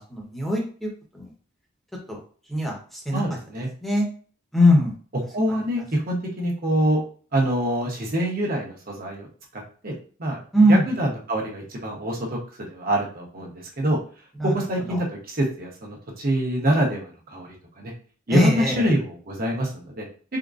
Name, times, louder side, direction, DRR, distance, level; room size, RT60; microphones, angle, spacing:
voice 1, 0.1-0.9 2.5-2.7 3.1-3.2 3.8-4.0 4.5-4.9 10.5-10.8 18.3-18.7, left 1 dB, ahead, -2 dB, 0.8 m, -19 dB
voice 2, 3.1-3.7 5.3-7.0 7.3-9.3 9.5-9.9 10.2-10.4 10.7-12.4 12.7-14.0 14.4-17.9 18.3-20.1, right 1 dB, 45° right, -1 dB, 0.9 m, -25 dB
3.7 x 2.1 x 2.4 m, 0.41 s
head